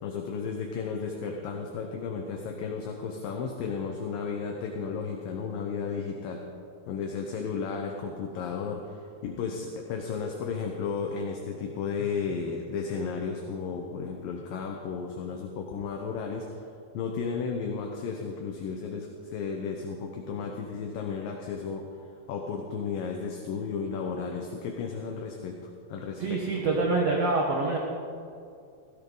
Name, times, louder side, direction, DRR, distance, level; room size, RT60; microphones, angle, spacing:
voice 1, 0.0-6.4 6.9-16.7 16.9-21.8 22.3-25.6 25.9-26.8, left 5 dB, 70° left, 1 dB, 2.4 m, -34 dB
voice 2, 26.2-27.8, right 3 dB, 60° right, -1 dB, 1.7 m, -26 dB
16.5 x 16.5 x 4.0 m, 2.5 s
omnidirectional pair, 4.8 m